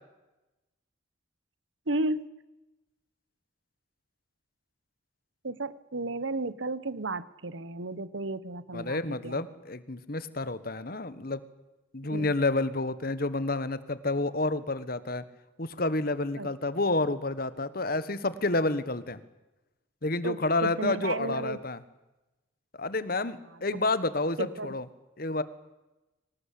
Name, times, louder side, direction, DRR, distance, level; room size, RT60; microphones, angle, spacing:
voice 1, 1.9-2.3 5.4-9.4 12.0-12.3 16.4-16.5 20.2-21.6 23.7-23.8 24.4-24.8, right 2 dB, 80° right, 17 dB, 1.2 m, -33 dB
voice 2, 8.7-11.4 11.9-15.2 15.6-19.2 20.0-21.8 22.8-24.8 25.2-25.4, left 2 dB, 50° left, 14 dB, 1.5 m, -29 dB
24.5 x 19.0 x 8.5 m, 1.0 s
head